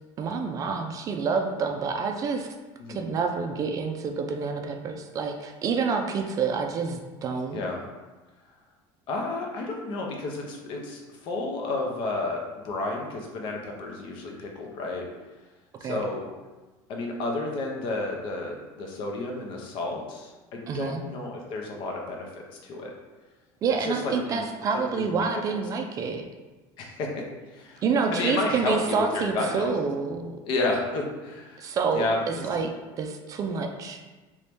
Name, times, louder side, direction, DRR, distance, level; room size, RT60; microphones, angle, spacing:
voice 1, 0.2-2.5 2.9-7.6 15.8-16.0 20.7-21.0 23.6-26.2 27.8-30.3 31.6-34.0, right 5 dB, 35° right, 5 dB, 0.3 m, -28 dB
voice 2, 9.1-15.1 15.8-16.3 16.9-22.9 23.8-24.4 24.7-25.6 26.8-27.2 27.5-27.8 28.1-29.7 30.4-31.6 31.9-32.5, left 2 dB, 55° left, 1 dB, 0.7 m, -31 dB
3.0 x 2.8 x 3.4 m, 1.2 s
cardioid pair, 140°, 10 cm